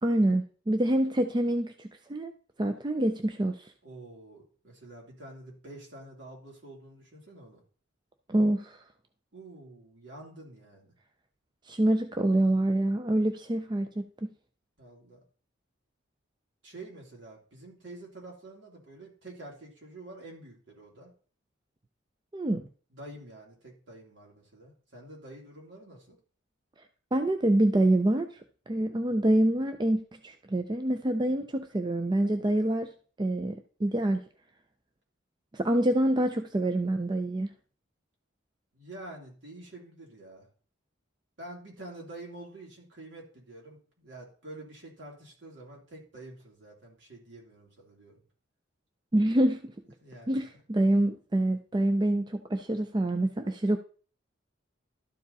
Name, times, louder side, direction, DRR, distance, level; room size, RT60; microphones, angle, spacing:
voice 1, 0.0-1.7 2.1-2.3 2.6-3.7 8.3-8.8 11.7-14.3 22.3-22.6 27.1-28.3 28.7-32.9 33.2-34.2 35.5-37.5 49.1-49.7 50.3-53.8, right 1 dB, 20° right, 7 dB, 0.4 m, -26 dB
voice 2, 3.8-7.6 9.3-10.9 14.8-15.2 16.6-21.1 22.9-26.2 38.7-40.5 41.4-48.2 50.0-50.4, right 2 dB, 65° right, -2 dB, 3.2 m, -47 dB
12.5 x 4.9 x 4.0 m, 0.42 s
head